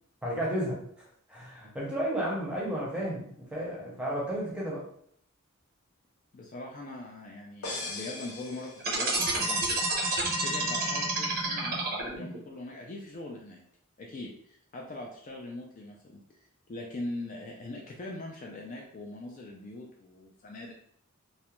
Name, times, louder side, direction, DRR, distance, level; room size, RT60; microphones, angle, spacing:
voice 1, 0.2-4.9, right 1 dB, 5° right, -5 dB, 0.7 m, -33 dB
voice 2, 6.3-9.7 10.4-13.6 14.0-16.2 16.7-20.7, left 2 dB, 40° left, 0 dB, 0.3 m, -41 dB
sound 1, 7.6-9.4, left 2 dB, 85° left, 0.6 m, -40 dB
sound 2, 8.8-12.4, right 2 dB, 45° right, 0.6 m, -29 dB
2.4 x 2.1 x 2.9 m, 0.65 s
head